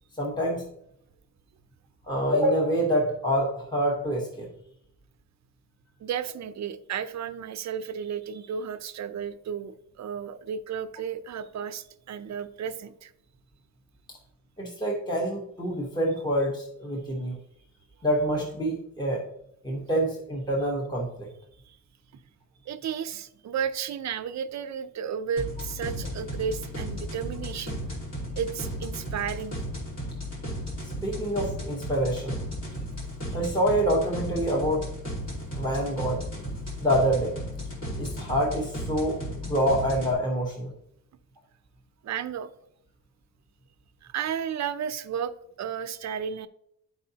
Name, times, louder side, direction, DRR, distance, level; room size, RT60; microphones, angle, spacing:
voice 1, 0.2-0.7 2.1-4.5 14.1-14.2 14.6-17.4 18.0-19.2 19.6-21.3 31.0-32.4 33.3-34.9 35.5-36.2 36.8-37.3 37.9-40.7, equal, 10° left, -1 dB, 1.1 m, -26 dB
voice 2, 6.0-13.1 21.7-21.8 22.6-27.8 28.3-29.6 42.0-42.5 44.0-45.3 45.6-46.5, right 7 dB, 50° right, 10 dB, 0.6 m, -33 dB
sound 1, 25.4-40.1, equal, 50° left, 2.9 m, -35 dB
12.0 x 4.7 x 2.8 m, 0.76 s
cardioid pair, 135°, 36 cm